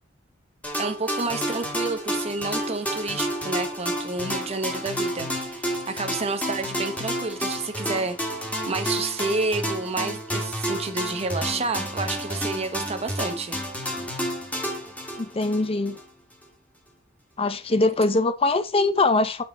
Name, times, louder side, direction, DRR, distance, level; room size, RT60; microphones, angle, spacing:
sound 1, 0.6-16.0, equal, 10° left, 1.5 m, -30 dB
voice 1, 0.8-8.2 8.7-13.6, right 3 dB, 30° right, 0.9 m, -29 dB
voice 2, 15.2-16.0 17.4-19.4, left 2 dB, 30° left, 0.6 m, -22 dB
7.0 x 4.7 x 4.1 m
head